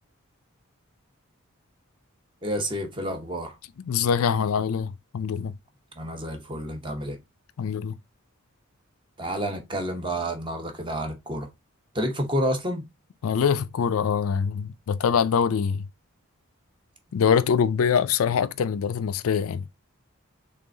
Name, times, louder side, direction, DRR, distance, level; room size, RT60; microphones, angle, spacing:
voice 1, 2.4-3.6 6.0-7.2 9.2-11.5 11.9-12.8, equal, 25° right, 0.9 m, -29 dB
voice 2, 3.9-5.5 7.6-8.0 13.2-15.8 17.1-19.7, left 7 dB, 80° left, 0.4 m, -24 dB
3.8 x 3.3 x 3.8 m
head